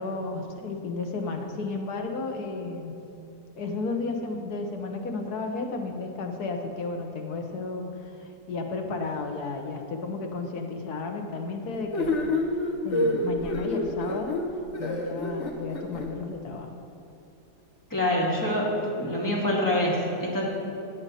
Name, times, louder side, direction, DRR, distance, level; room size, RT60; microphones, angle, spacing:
voice 1, 0.0-2.9 3.6-12.3 12.8-14.4 14.8-16.8, left 3 dB, 65° left, 3 dB, 1.5 m, -33 dB
sound 1, 11.9-16.1, left 1 dB, 45° left, 1.3 m, -28 dB
voice 2, 17.9-20.4, left 1 dB, 10° left, -5 dB, 2.2 m, -26 dB
15.5 x 8.6 x 4.2 m, 2.8 s
omnidirectional pair, 1.8 m